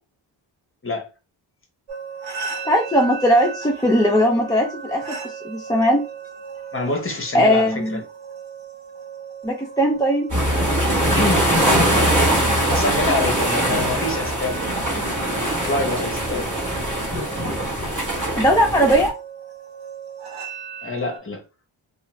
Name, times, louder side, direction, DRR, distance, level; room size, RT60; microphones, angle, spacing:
sound 1, 1.9-21.2, right 6 dB, 85° right, 1.2 m, -37 dB
voice 1, 2.6-6.0 7.3-8.0 9.4-10.3 18.4-19.1, equal, 10° left, 0.4 m, -19 dB
voice 2, 6.7-8.0 11.1-11.9 12.7-16.5 20.8-21.4, left 3 dB, 25° left, 0.7 m, -26 dB
sound 2, 10.3-19.1, right 1 dB, 35° right, 1.2 m, -22 dB
2.4 x 2.4 x 3.0 m
wide cardioid pair, 105°, 50 cm